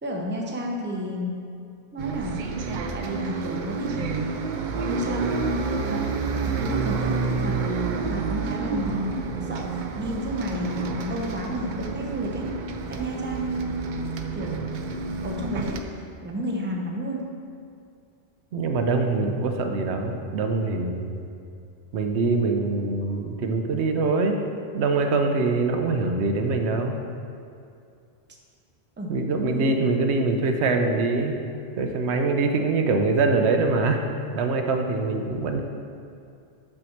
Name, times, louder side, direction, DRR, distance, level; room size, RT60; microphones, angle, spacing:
voice 1, 0.0-1.5 1.9-4.5 4.9-6.2 6.6-7.6 8.0-12.5 12.9-14.6 15.2-17.3 23.1-23.2 29.0-29.8, equal, 10° right, -1 dB, 0.7 m, -31 dB
Bus, 2.0-15.8, right 4 dB, 55° right, 0.6 m, -29 dB
voice 2, 18.5-21.3 21.9-24.4 24.7-27.0 29.1-31.4 31.8-34.0 34.3-35.6, right 3 dB, 85° right, 4 dB, 0.9 m, -24 dB
6.0 x 4.6 x 6.4 m, 2.4 s
omnidirectional pair, 1.1 m